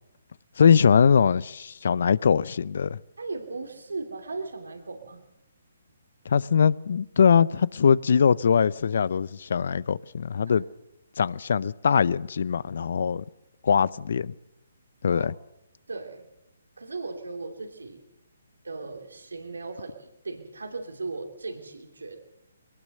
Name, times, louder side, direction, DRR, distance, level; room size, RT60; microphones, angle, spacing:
voice 1, 0.6-3.0 6.3-10.6 11.2-13.2 13.6-14.3 15.0-15.3, left 6 dB, 65° left, 0.7 m, -22 dB
voice 2, 3.2-5.2 10.4-10.6 15.1-15.3 15.9-16.3 16.8-18.0 18.6-22.2, right 3 dB, 85° right, 2.7 m, -37 dB
22.0 x 19.0 x 6.6 m
hypercardioid pair, 145°, 0 cm